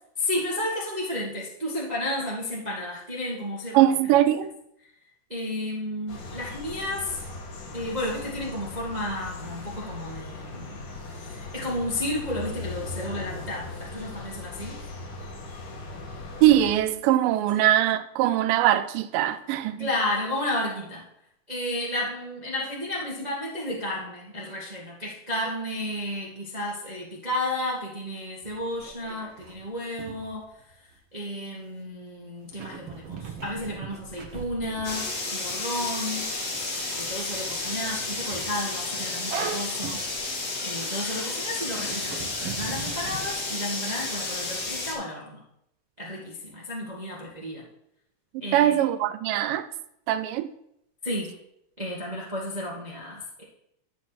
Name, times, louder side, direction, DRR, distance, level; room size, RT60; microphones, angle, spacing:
voice 1, 0.2-3.8 5.3-7.2 7.7-10.8 11.2-14.8 17.5-17.6 19.8-21.0 21.5-30.5 31.1-36.3 36.9-40.0 40.6-45.4 46.0-47.6 48.4-48.8 51.0-51.3 51.8-53.4, left 1 dB, 20° right, 1.1 m, -32 dB
voice 2, 3.7-4.5 16.4-19.9 48.3-49.7 50.1-50.5, right 12 dB, 85° right, 2.2 m, -22 dB
sound 1, 6.1-16.7, left 3 dB, 90° left, 3.6 m, -39 dB
sound 2, 28.4-31.0 32.5-41.3 41.7-43.3, right 6 dB, 60° right, 1.8 m, -40 dB
sound 3, 34.8-44.9, left 3 dB, 55° left, 3.5 m, -32 dB
13.0 x 4.5 x 6.0 m
omnidirectional pair, 3.8 m